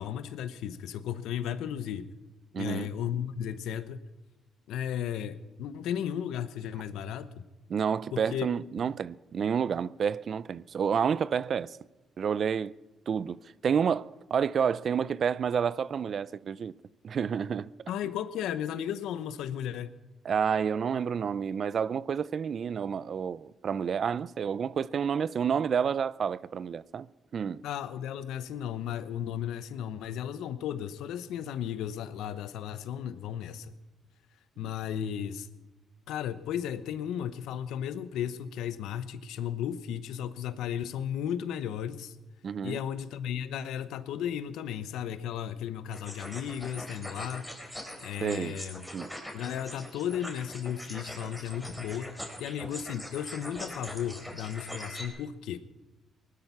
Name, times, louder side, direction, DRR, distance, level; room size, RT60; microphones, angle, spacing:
voice 1, 0.0-2.1 2.6-4.0 4.7-7.3 8.1-8.5 17.9-19.9 27.6-33.7 34.6-35.5 36.1-42.1 42.6-47.4 48.0-48.8 49.3-55.6, left 9 dB, 85° left, 0.8 m, -35 dB
voice 2, 2.5-2.9 7.7-11.8 12.2-12.7 13.1-16.7 17.0-17.7 20.2-27.1 27.3-27.6 42.4-42.8 48.2-48.6 48.9-49.1, right 7 dB, 50° right, 0.4 m, -29 dB
sound 1, 45.9-55.1, equal, ahead, 3.5 m, -42 dB
19.0 x 12.5 x 5.8 m
cardioid pair, 90°, 0 cm